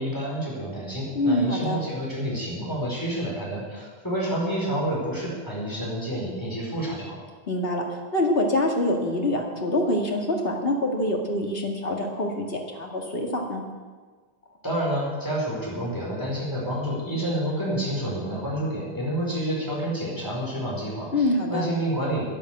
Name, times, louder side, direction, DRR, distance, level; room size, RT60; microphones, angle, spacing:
voice 1, 0.0-7.2 14.6-22.2, right 1 dB, 20° left, -4 dB, 4.8 m, -29 dB
voice 2, 1.1-1.8 7.5-7.8 8.1-13.6 21.1-21.6, left 1 dB, 65° left, 0 dB, 2.4 m, -25 dB
11.5 x 10.5 x 8.1 m, 1.4 s
omnidirectional pair, 1.1 m